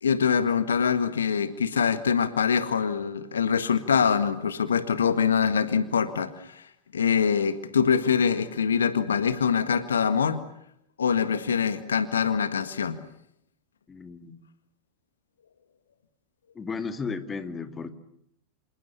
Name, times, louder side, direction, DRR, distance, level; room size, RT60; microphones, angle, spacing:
voice 1, 0.0-10.4 11.0-13.0, left 6 dB, 70° left, 11 dB, 1.7 m, -24 dB
voice 2, 13.9-14.4 16.5-17.9, left 5 dB, 20° left, 8 dB, 2.3 m, -34 dB
28.0 x 27.5 x 6.9 m, 0.76 s
figure-of-eight pair, 90°, 0 cm